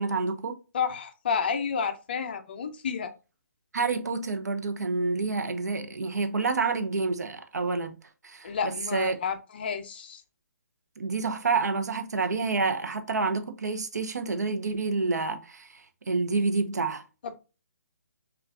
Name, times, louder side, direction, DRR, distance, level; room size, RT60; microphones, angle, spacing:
voice 1, 0.0-0.6 3.7-7.9 8.2-9.2 11.0-17.0, right 4 dB, 85° right, 0.7 m, -28 dB
voice 2, 0.7-3.1 8.4-10.2 17.2-17.4, left 6 dB, 35° left, 0.5 m, -30 dB
5.7 x 2.4 x 2.4 m
hypercardioid pair, 165°, 9 cm